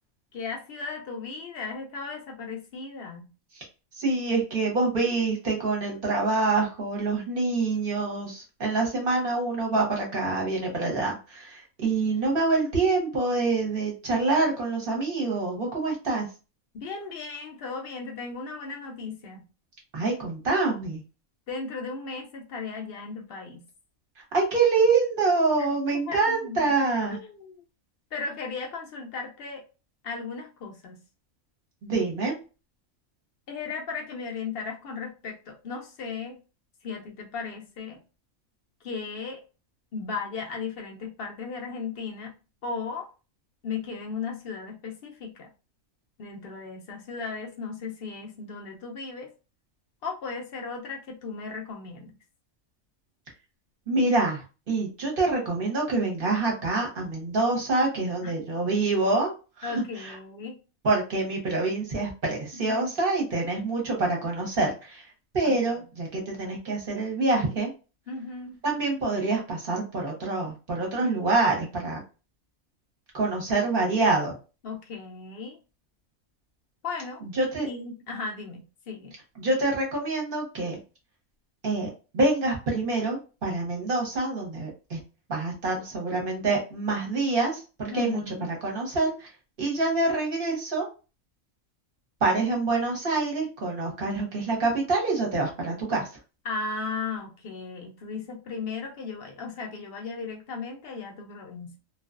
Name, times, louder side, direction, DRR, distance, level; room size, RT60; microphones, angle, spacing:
voice 1, 0.3-3.3 16.7-19.4 21.5-23.6 25.6-25.7 25.9-26.7 27.1-27.6 28.1-29.6 30.0-31.0 33.5-36.4 36.8-38.0 38.8-39.4 39.9-42.3 42.6-43.1 43.6-45.5 46.2-49.3 50.0-52.1 58.2-58.3 59.6-60.5 62.5-62.9 65.4-65.6 68.1-68.6 74.6-75.6 76.8-77.2 77.7-79.1 87.9-88.5 96.4-101.8, left 4 dB, 60° left, 2 dB, 0.6 m, -36 dB
voice 2, 4.0-16.3 19.9-21.0 24.3-27.2 31.8-32.4 53.9-59.3 59.6-59.7 60.0-60.1 60.8-65.0 65.3-67.7 68.6-72.0 73.1-74.4 77.3-77.7 79.4-80.8 81.6-85.0 85.3-88.2 88.5-89.3 89.6-90.9 92.2-96.1, right 3 dB, 45° right, -1 dB, 0.9 m, -26 dB
2.4 x 2.3 x 2.3 m, 0.32 s
omnidirectional pair, 1.4 m